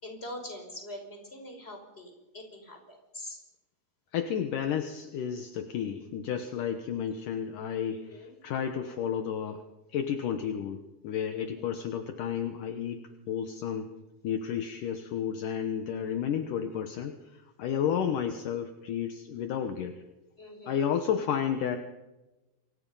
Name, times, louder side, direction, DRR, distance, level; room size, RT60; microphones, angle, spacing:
voice 1, 0.0-3.4 7.9-8.3 11.3-11.5 20.4-20.8, left 1 dB, 15° left, 4 dB, 5.4 m, -44 dB
voice 2, 4.1-9.6 9.9-13.9 14.2-20.0 20.7-21.8, left 8 dB, 70° left, 7 dB, 2.6 m, -32 dB
28.0 x 24.5 x 5.6 m, 1.1 s
omnidirectional pair, 4.2 m